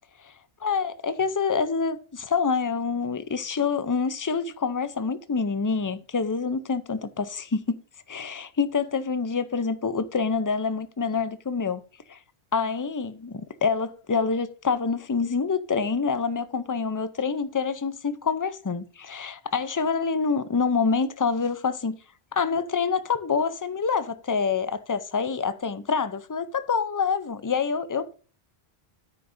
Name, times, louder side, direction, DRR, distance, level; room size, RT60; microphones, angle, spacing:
voice 1, 0.6-7.8 8.1-11.8 12.1-12.2 12.5-22.0 22.3-28.1, left 5 dB, 25° left, 0.5 m, -26 dB
9.7 x 9.2 x 2.7 m
omnidirectional pair, 1.1 m